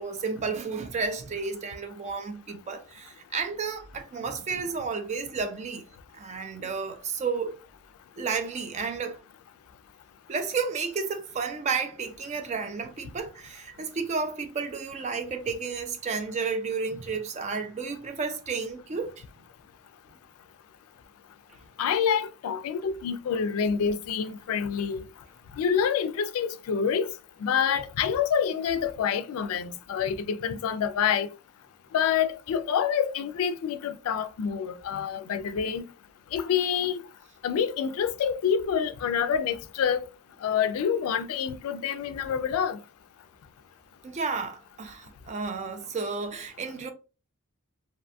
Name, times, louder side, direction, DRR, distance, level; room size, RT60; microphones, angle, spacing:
voice 1, 0.0-5.9 6.1-7.6 8.2-9.2 10.3-19.2 44.0-46.9, right 5 dB, 30° right, 0.3 m, -32 dB
voice 2, 21.8-25.1 25.6-27.1 27.4-31.3 31.9-35.8 36.3-37.0 37.4-40.1 40.4-42.8, left 7 dB, 75° left, 0.3 m, -27 dB
2.6 x 2.2 x 2.5 m
head